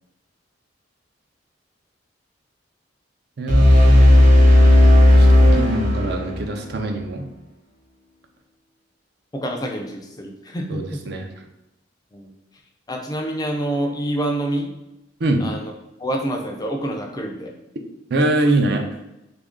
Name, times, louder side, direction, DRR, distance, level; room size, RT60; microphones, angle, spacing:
voice 1, 3.4-4.2 5.1-7.3 10.7-11.3 15.2-15.5 18.1-18.8, right 1 dB, 60° right, 3 dB, 0.5 m, -23 dB
sound 1, 3.5-6.5, left 1 dB, 40° right, 0.9 m, -12 dB
voice 2, 9.3-10.8 12.1-12.3 12.9-14.7 15.4-15.7 16.0-17.5, right 1 dB, 20° left, 2 dB, 0.4 m, -27 dB
3.1 x 2.5 x 3.5 m, 0.91 s
head